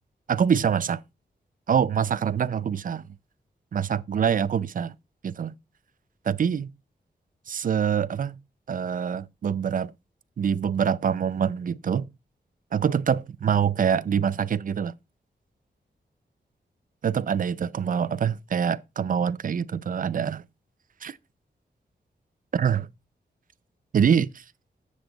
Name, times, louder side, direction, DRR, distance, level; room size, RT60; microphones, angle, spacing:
voice 1, 0.3-1.0 1.7-3.0 3.7-4.9 5.2-5.5 6.3-6.7 7.5-8.4 8.7-9.9 10.4-12.1 12.7-14.9 17.0-20.4 21.0-21.2 22.5-22.9 23.9-24.4, right 7 dB, 50° right, 0.4 m, -25 dB
8.0 x 7.5 x 3.9 m
wide cardioid pair, 150°, 18 cm